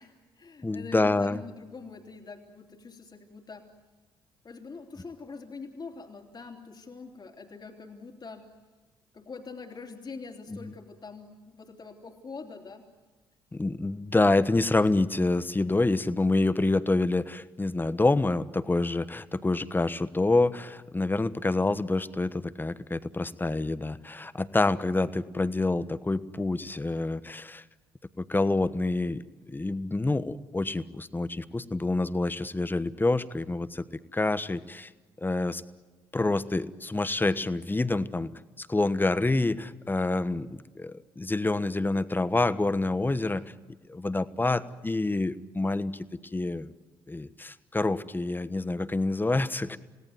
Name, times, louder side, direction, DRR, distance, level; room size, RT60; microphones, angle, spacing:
voice 1, 0.0-3.7 4.4-8.5 9.1-12.9, left 4 dB, 40° left, 2 dB, 3.1 m, -44 dB
voice 2, 0.6-1.4 10.5-10.7 13.5-27.6 28.2-33.8 34.1-34.9 35.2-35.6 36.1-38.3 38.6-43.4 43.9-46.1 46.3-46.7 47.1-49.8, left 2 dB, 15° left, 13 dB, 1.3 m, -27 dB
29.0 x 18.0 x 9.5 m, 1.3 s
hypercardioid pair, 45°, 12 cm